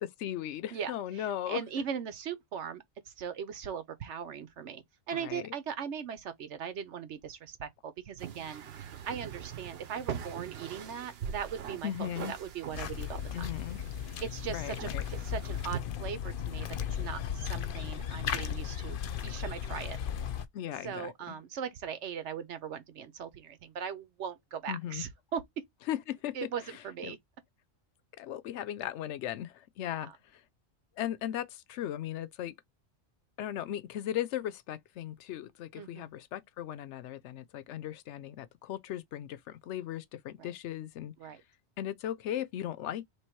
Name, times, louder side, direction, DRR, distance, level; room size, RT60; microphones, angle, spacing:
voice 1, 0.0-1.6 5.1-5.5 11.8-12.3 13.3-13.8 14.5-15.0 20.5-21.4 24.7-25.0 25.9-27.2 28.2-30.4 31.0-32.5 33.4-41.1 41.8-43.0, left 11 dB, 85° left, 0.9 m, -37 dB
voice 2, 0.7-8.6 9.1-13.5 14.2-20.0 20.8-25.6 26.3-27.2 29.8-30.1 35.7-36.1 40.4-40.5 41.2-41.4, right 7 dB, 85° right, 1.2 m, -39 dB
Sailing Boat Maintenance, 8.2-15.8, right 8 dB, 65° right, 0.9 m, -43 dB
sound 1, 12.7-20.5, left 9 dB, 55° left, 0.7 m, -36 dB
3.3 x 3.0 x 4.5 m
omnidirectional pair, 1.2 m